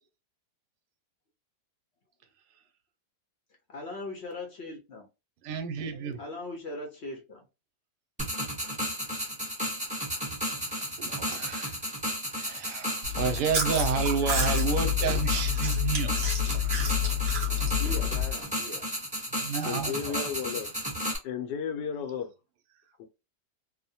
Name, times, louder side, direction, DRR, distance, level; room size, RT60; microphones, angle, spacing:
voice 1, 3.7-5.1 6.2-7.4 17.8-18.9, left 2 dB, 55° left, 0.7 m, -39 dB
voice 2, 5.4-6.2 11.0-11.8 12.4-16.1 19.4-20.2, right 6 dB, 75° right, 1.1 m, -30 dB
sound 1, 8.2-21.2, equal, 10° right, 0.5 m, -33 dB
Chewing mastication, 13.0-18.4, left 6 dB, 55° right, 0.5 m, -28 dB
voice 3, 19.7-20.7 21.2-22.3 23.0-23.1, left 7 dB, 85° left, 1.3 m, -33 dB
2.9 x 2.1 x 2.7 m
omnidirectional pair, 1.8 m